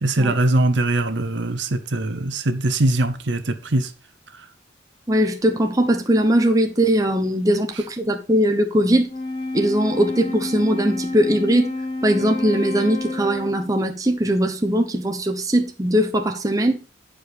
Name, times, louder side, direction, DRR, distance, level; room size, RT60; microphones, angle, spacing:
voice 1, 0.0-3.9, right 2 dB, 70° right, 0.9 m, -21 dB
voice 2, 5.1-9.1 9.5-11.7 12.0-16.8, equal, 20° right, 1.0 m, -20 dB
Wind instrument woodwind instrument, 9.0-13.8, left 2 dB, 25° left, 1.3 m, -29 dB
10.0 x 5.0 x 5.1 m
head